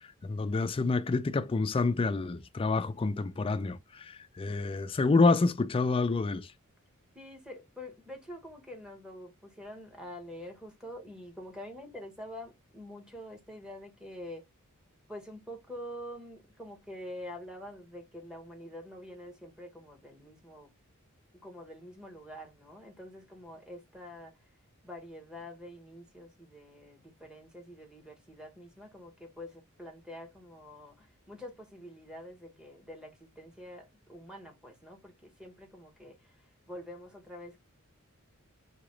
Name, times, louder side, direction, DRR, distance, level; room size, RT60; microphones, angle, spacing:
voice 1, 0.2-6.5, left 3 dB, 25° left, 0.4 m, -28 dB
voice 2, 7.1-14.4 15.1-20.7 21.4-24.5 24.8-37.6, left 1 dB, 5° right, 1.1 m, -46 dB
4.9 x 2.9 x 3.1 m
head